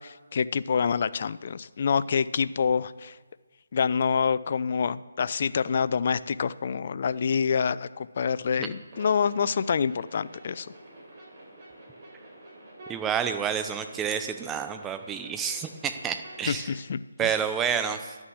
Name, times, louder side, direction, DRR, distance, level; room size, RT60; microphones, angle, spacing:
voice 1, 0.0-3.2 3.7-10.7 16.5-17.3, left 6 dB, 45° left, 16 dB, 0.4 m, -27 dB
sound 1, 8.9-16.7, right 1 dB, 35° right, 3.7 m, -48 dB
voice 2, 12.9-16.7 17.2-18.1, right 7 dB, 10° right, 9 dB, 0.6 m, -29 dB
11.0 x 6.1 x 6.3 m, 1.3 s
figure-of-eight pair, 155°, 0 cm